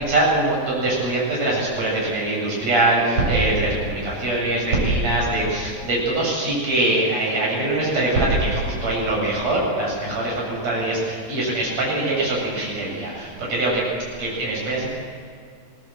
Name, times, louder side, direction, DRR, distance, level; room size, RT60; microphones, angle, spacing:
voice 1, 0.0-14.9, right 2 dB, 50° right, -4 dB, 9.0 m, -22 dB
23.0 x 18.0 x 7.8 m, 2.3 s
omnidirectional pair, 4.1 m